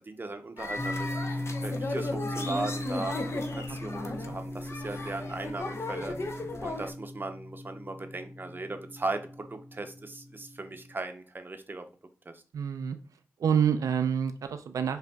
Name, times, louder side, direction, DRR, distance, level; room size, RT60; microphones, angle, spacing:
voice 1, 0.0-11.9 12.3-12.4, right 2 dB, 35° right, 0.6 m, -38 dB
sound 1, 0.6-6.9, left 2 dB, 50° left, 0.6 m, -36 dB
sound 2, 0.8-10.9, left 1 dB, 10° left, 0.6 m, -38 dB
voice 2, 4.1-4.4 12.5-13.0 13.4-15.0, right 7 dB, 80° right, 0.3 m, -28 dB
5.1 x 2.5 x 2.3 m
cardioid pair, 45°, 6 cm